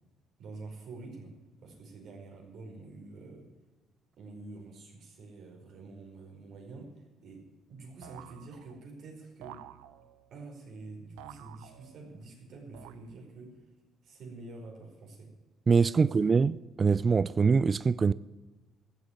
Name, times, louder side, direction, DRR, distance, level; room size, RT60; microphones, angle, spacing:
voice 1, 0.4-3.5 4.2-9.6 10.3-13.6 14.0-15.3 16.0-16.3, right 3 dB, 65° right, 5.0 m, -47 dB
sound 1, 8.0-9.0 9.4-10.4 11.2-12.2 12.7-13.5, right 13 dB, 85° right, 0.6 m, -51 dB
voice 2, 15.7-18.1, right 5 dB, 40° right, 0.4 m, -24 dB
14.5 x 7.9 x 9.9 m
hypercardioid pair, 55°, 0 cm